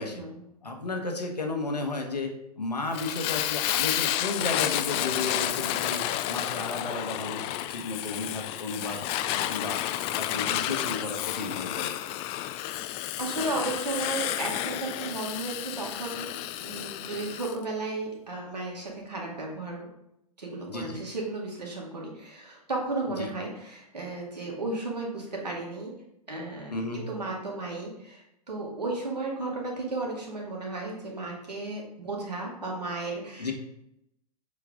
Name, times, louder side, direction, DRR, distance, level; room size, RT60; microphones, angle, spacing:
voice 1, 0.0-0.4 13.2-19.9 20.4-25.9 26.3-33.5, right 2 dB, 85° right, -1 dB, 2.2 m, -34 dB
voice 2, 0.6-9.0 9.3-9.8 10.2-11.9 20.7-21.0 23.2-23.3 26.7-27.0 33.4-33.5, left 3 dB, 85° left, 3 dB, 1.4 m, -33 dB
Fire, 2.9-17.6, left 13 dB, 30° left, 0.4 m, -31 dB
7.7 x 4.7 x 3.7 m, 0.81 s
figure-of-eight pair, 105°, 20 cm